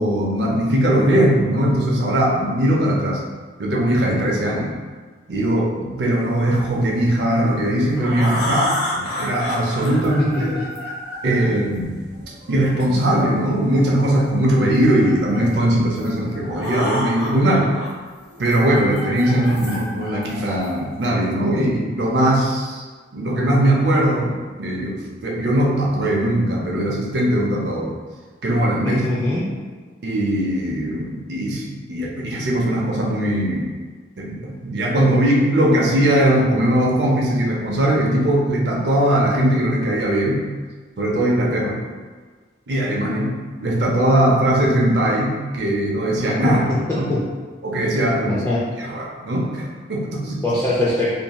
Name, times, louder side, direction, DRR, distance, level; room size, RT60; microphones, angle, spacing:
voice 1, 0.0-3.2 3.6-4.8 5.3-10.6 11.2-12.1 12.5-17.7 18.4-22.8 23.1-27.9 28.4-29.0 30.0-33.7 34.2-40.4 41.0-41.8 42.7-43.3 43.6-46.6 47.0-47.1 47.6-48.4 48.8-50.5, right 1 dB, 65° right, -2 dB, 0.5 m, -20 dB
sound 1, 7.5-13.4 14.4-15.5 16.0-16.1 16.3-17.9 18.3-21.0, left 1 dB, 60° left, 0.7 m, -30 dB
voice 2, 10.0-10.4 28.8-29.4 46.5-47.2 48.2-48.6 50.4-51.1, left 1 dB, 15° left, -9 dB, 0.4 m, -22 dB
2.9 x 2.5 x 2.2 m, 1.4 s
head